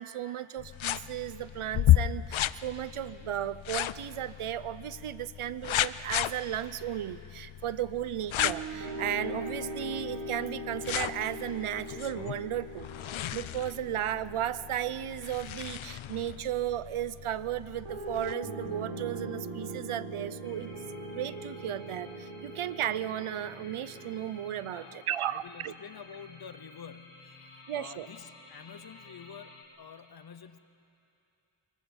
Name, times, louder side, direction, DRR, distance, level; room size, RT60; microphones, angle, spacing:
voice 1, 0.0-12.9 13.3-20.7 21.1-25.7 27.7-28.1, right 11 dB, 85° right, 16 dB, 0.7 m, -35 dB
sound 1, 0.6-18.3, left 13 dB, 70° left, 0.5 m, -34 dB
sound 2, 8.4-16.5 17.8-24.5, right 1 dB, 70° right, 1.7 m, -41 dB
sound 3, 20.4-29.6, left 3 dB, 90° left, 3.2 m, -53 dB
voice 2, 24.7-30.6, left 7 dB, 50° left, 12 dB, 0.9 m, -48 dB
24.0 x 23.5 x 7.2 m, 2.8 s
wide cardioid pair, 150°, 49 cm